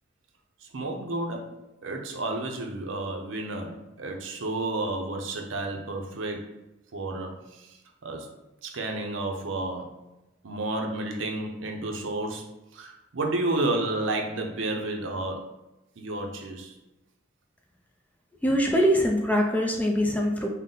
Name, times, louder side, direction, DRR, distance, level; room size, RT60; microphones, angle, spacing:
voice 1, 0.6-6.5 6.9-8.3 8.6-10.0 10.4-15.5 16.0-16.8, right 2 dB, 75° right, 2 dB, 0.6 m, -31 dB
voice 2, 18.4-20.5, equal, 10° left, 0 dB, 0.4 m, -23 dB
3.7 x 2.1 x 3.8 m, 0.94 s
head